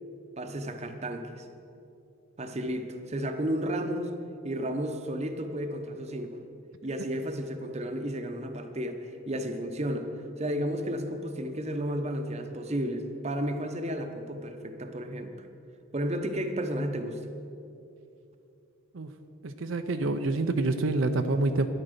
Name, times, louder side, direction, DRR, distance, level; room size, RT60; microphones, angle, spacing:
voice 1, 0.4-1.5 2.4-4.1 4.4-6.4 6.8-10.1 10.4-15.5 15.9-17.2, equal, 30° right, 6 dB, 0.9 m, -32 dB
voice 2, 19.4-21.7, right 2 dB, 70° right, 7 dB, 0.6 m, -27 dB
12.5 x 10.0 x 6.7 m, 2.7 s
head